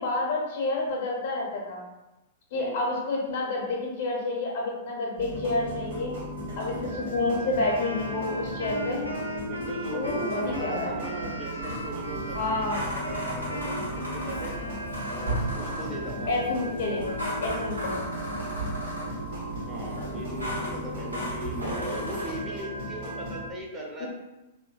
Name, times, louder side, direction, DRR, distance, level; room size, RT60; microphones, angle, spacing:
voice 1, 0.0-1.8 2.5-6.2 6.6-9.1 9.9-10.9 12.3-12.8 16.3-17.1 17.4-17.9 24.0-24.1, left 2 dB, 50° left, -2 dB, 0.7 m, -29 dB
voice 2, 2.5-2.9 9.5-14.6 15.1-16.4 19.7-24.1, right 1 dB, 20° right, -2 dB, 0.5 m, -38 dB
sound 1, 5.2-23.5, right 1 dB, 55° right, 0.8 m, -36 dB
Wind instrument woodwind instrument, 7.6-16.0, equal, 80° left, 0.3 m, -39 dB
sound 2, 11.6-22.4, equal, 85° right, 1.0 m, -35 dB
2.7 x 2.5 x 2.3 m, 1.0 s
figure-of-eight pair, 100°, 0 cm